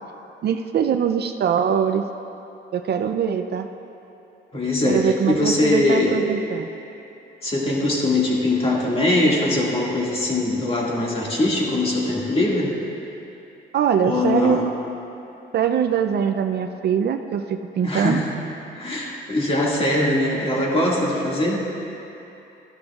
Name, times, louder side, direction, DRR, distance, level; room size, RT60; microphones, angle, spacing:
voice 1, 0.4-2.0 2.7-3.7 4.8-6.7 13.7-14.6 15.5-18.2, right 8 dB, 55° right, 7 dB, 0.5 m, -22 dB
voice 2, 4.5-6.2 7.4-12.7 14.0-14.7 17.8-18.3 18.7-21.6, left 1 dB, 30° left, -3 dB, 2.0 m, -21 dB
14.0 x 11.5 x 2.4 m, 2.9 s
cardioid pair, 90°, 20 cm